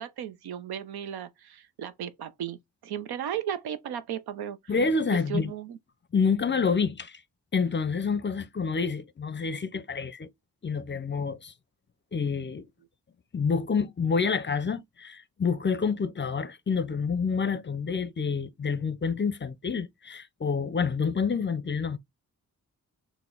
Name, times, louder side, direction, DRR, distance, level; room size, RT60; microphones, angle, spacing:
voice 1, 0.0-4.8 5.1-5.8, right 9 dB, 80° right, 0.6 m, -35 dB
voice 2, 4.7-5.5 6.1-7.2 7.5-10.3 10.6-11.5 12.1-12.7 13.3-22.0, left 5 dB, 30° left, 0.5 m, -28 dB
4.6 x 2.1 x 3.8 m
supercardioid pair, 45°, 37 cm